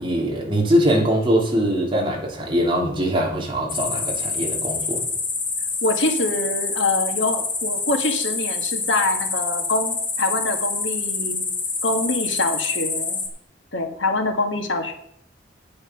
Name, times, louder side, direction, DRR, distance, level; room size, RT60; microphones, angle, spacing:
voice 1, 0.0-5.0, equal, 30° right, -1 dB, 2.8 m, -22 dB
sound 1, 3.7-13.3, left 4 dB, 30° left, 2.2 m, -26 dB
voice 2, 5.8-11.4 11.8-13.2 13.7-14.9, left 2 dB, 85° left, 5 dB, 1.7 m, -24 dB
9.1 x 8.6 x 5.9 m, 0.67 s
head